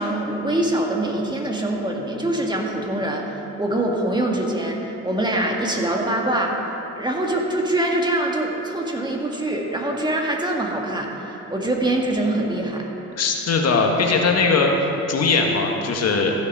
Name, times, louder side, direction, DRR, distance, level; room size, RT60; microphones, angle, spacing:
voice 1, 0.0-6.5 7.0-12.9, right 1 dB, 15° right, 0 dB, 1.8 m, -24 dB
voice 2, 13.1-14.7 15.1-16.3, left 4 dB, 55° left, 2 dB, 1.5 m, -20 dB
14.5 x 8.2 x 5.4 m, 3.0 s
cardioid pair, 90°, 30 cm